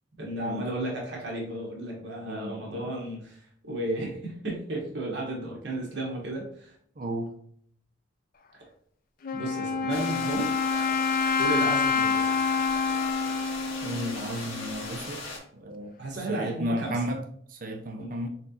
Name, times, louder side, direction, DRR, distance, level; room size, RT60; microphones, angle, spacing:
voice 1, 0.2-6.7 9.3-10.5 11.4-12.3 16.0-17.0 18.0-18.2, right 1 dB, 60° right, -2 dB, 1.3 m, -33 dB
voice 2, 2.3-2.9 7.0-7.4 13.8-15.3 15.5-17.2 17.5-18.3, equal, 45° right, 3 dB, 0.5 m, -34 dB
Wind instrument woodwind instrument, 9.2-15.0, left 5 dB, 45° left, 0.4 m, -27 dB
sound 1, 9.9-15.4, left 2 dB, 80° left, 1.7 m, -39 dB
4.3 x 3.8 x 2.8 m, 0.63 s
head